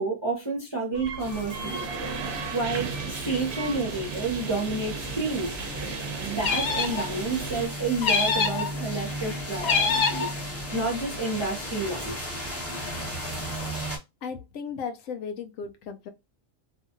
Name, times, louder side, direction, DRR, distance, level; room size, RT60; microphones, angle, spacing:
voice 1, 0.0-1.9 2.5-5.6 6.2-12.3, right 3 dB, 25° right, 0.7 m, -30 dB
sound 1, 0.9-7.7, right 4 dB, 60° right, 0.8 m, -35 dB
sound 2, 1.2-14.0, equal, 15° left, 0.7 m, -36 dB
sound 3, 6.4-7.1 8.0-8.7 9.6-10.3, left 5 dB, 60° left, 0.4 m, -24 dB
voice 2, 14.2-16.1, left 6 dB, 80° left, 1.0 m, -35 dB
2.8 x 2.5 x 2.5 m
omnidirectional pair, 1.4 m